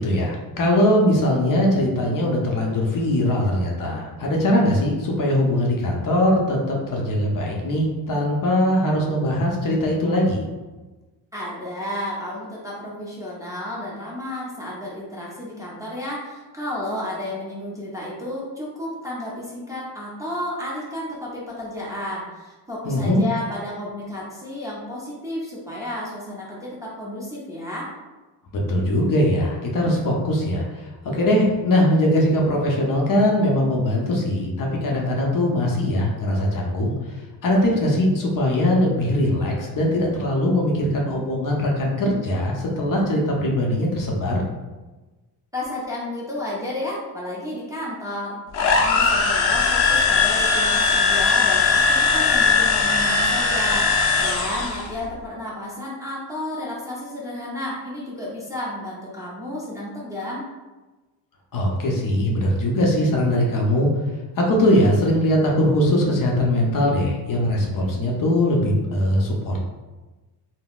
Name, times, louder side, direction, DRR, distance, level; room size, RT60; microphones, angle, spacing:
voice 1, 0.0-10.4 22.8-23.2 28.5-36.9 37.4-44.4 61.5-63.9 64.4-69.6, left 1 dB, 45° left, -1 dB, 0.7 m, -21 dB
voice 2, 11.3-27.9 45.5-60.5, left 1 dB, 10° right, -7 dB, 0.6 m, -32 dB
sound 1, 48.5-54.9, left 4 dB, 85° left, 0.6 m, -19 dB
3.7 x 2.0 x 2.3 m, 1.2 s
cardioid pair, 110°, 45 cm